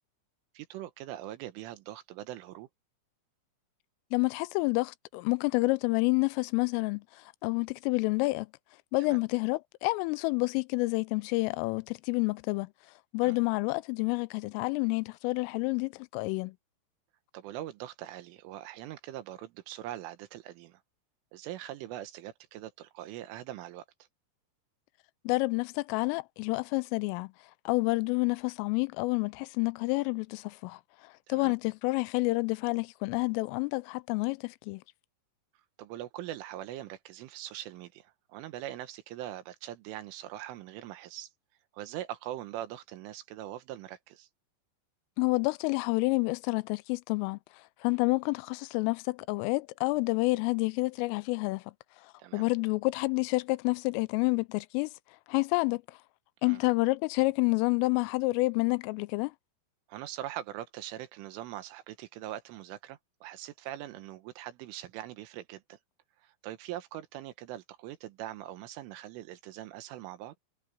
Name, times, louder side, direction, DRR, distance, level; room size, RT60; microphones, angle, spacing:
voice 1, 0.6-2.7 9.0-9.2 13.2-13.4 17.3-20.8 21.3-23.9 31.3-31.5 35.8-41.3 41.7-44.3 52.2-52.5 56.4-56.6 59.9-65.8 66.2-70.4, right 13 dB, 80° right, 3.7 m, -42 dB
voice 2, 4.1-8.5 8.9-12.7 13.1-16.5 25.3-27.3 27.7-34.8 45.2-47.4 47.8-51.6 52.3-54.9 55.3-56.0 56.4-59.3, left 25 dB, 85° left, 3.1 m, -29 dB
omnidirectional pair, 5.8 m